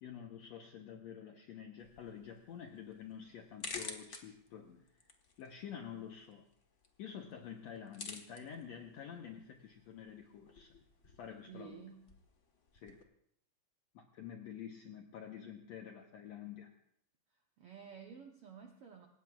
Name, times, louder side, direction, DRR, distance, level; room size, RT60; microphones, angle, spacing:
voice 1, 0.0-4.9 5.4-6.4 7.0-10.7 11.0-11.9 12.7-13.0 13.9-16.7, left 8 dB, 65° left, 3 dB, 1.9 m, -49 dB
sound 1, 1.8-13.0, left 4 dB, 85° left, 0.6 m, -52 dB
voice 2, 11.5-12.1 17.6-19.1, right 7 dB, 65° right, 2 dB, 1.5 m, -52 dB
28.0 x 16.5 x 2.4 m, 0.69 s
omnidirectional pair, 3.8 m